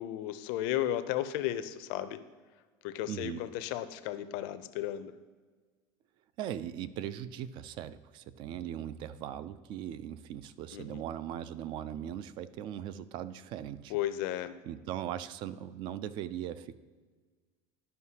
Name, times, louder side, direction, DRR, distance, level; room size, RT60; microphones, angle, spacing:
voice 1, 0.0-2.2 2.8-5.1 10.7-11.0 13.9-14.5, left 12 dB, 65° left, 11 dB, 0.5 m, -34 dB
voice 2, 3.1-3.4 6.4-13.9 14.6-16.7, right 10 dB, 40° right, 15 dB, 0.3 m, -39 dB
11.0 x 5.5 x 2.8 m, 1.5 s
cardioid pair, 160°, 12 cm